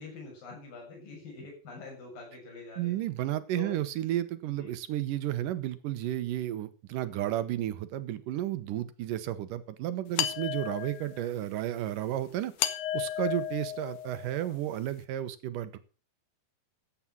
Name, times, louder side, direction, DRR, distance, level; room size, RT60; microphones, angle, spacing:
voice 1, 0.0-3.0 3.5-3.8 4.5-4.7, left 3 dB, 60° left, 0 dB, 8.3 m, -45 dB
voice 2, 2.8-12.5 12.9-15.8, right 13 dB, 70° right, 12 dB, 2.4 m, -32 dB
sound 1, 10.2-11.3 12.6-14.5, left 11 dB, 85° left, 3.2 m, -33 dB
15.0 x 8.8 x 6.1 m, 0.37 s
omnidirectional pair, 4.5 m